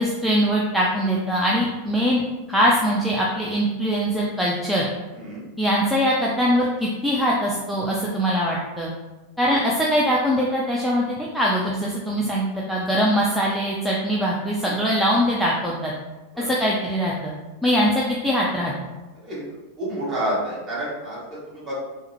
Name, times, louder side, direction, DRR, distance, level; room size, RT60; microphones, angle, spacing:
voice 1, 0.0-2.2 2.5-4.9 5.6-8.9 9.4-15.9 16.5-17.3 17.6-18.7, equal, ahead, -5 dB, 0.4 m, -22 dB
voice 2, 19.8-21.7, right 1 dB, 25° right, -7 dB, 1.5 m, -29 dB
3.4 x 2.1 x 3.0 m, 1.1 s
figure-of-eight pair, 90°, 0 cm